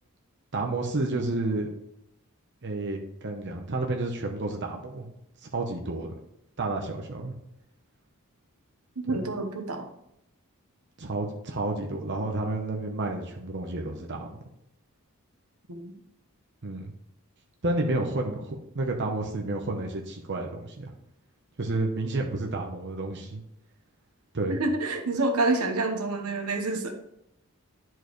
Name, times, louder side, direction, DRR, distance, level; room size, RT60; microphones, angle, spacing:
voice 1, 0.5-1.7 2.6-5.1 5.4-6.1 6.6-7.3 9.1-9.2 11.0-14.3 16.6-16.9 17.6-20.9 21.6-23.4 24.3-24.6, right 2 dB, 50° right, 1 dB, 0.8 m, -30 dB
voice 2, 9.1-9.9 15.7-15.9 24.5-26.9, right 2 dB, 85° right, 5 dB, 1.0 m, -27 dB
10.5 x 4.6 x 3.1 m, 0.81 s
head